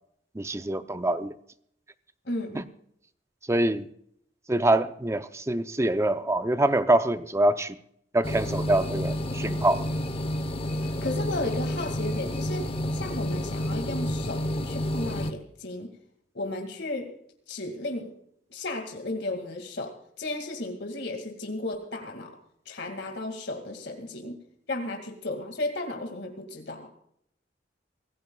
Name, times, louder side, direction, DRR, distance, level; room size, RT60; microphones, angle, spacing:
voice 1, 0.3-1.3 2.5-2.6 3.5-3.9 4.5-7.8 8.1-9.9, right 1 dB, 15° right, 11 dB, 0.6 m, -25 dB
voice 2, 2.3-2.6 10.8-15.9 16.3-17.1 17.5-18.1 18.5-22.3 22.7-24.4 24.7-26.9, left 2 dB, 75° left, 3 dB, 2.2 m, -34 dB
sound 1, 8.2-15.3, equal, 35° left, 0.9 m, -30 dB
25.5 x 15.5 x 2.3 m, 0.71 s
head